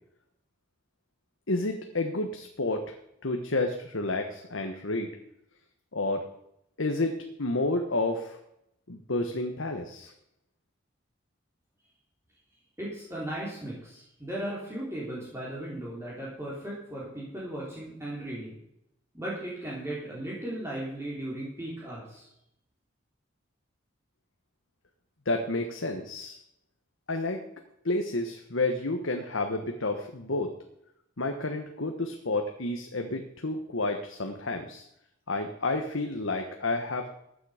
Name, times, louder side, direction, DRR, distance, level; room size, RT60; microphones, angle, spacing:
voice 1, 1.5-2.9 3.2-5.1 5.9-6.3 6.8-8.4 8.9-10.1 25.2-26.4 27.1-27.4 27.8-30.5 31.2-34.9 35.3-37.2, left 2 dB, 75° left, 4 dB, 1.3 m, -30 dB
voice 2, 12.8-18.6 19.1-22.3, right 1 dB, 15° right, -6 dB, 3.5 m, -36 dB
15.0 x 9.9 x 5.0 m, 0.78 s
head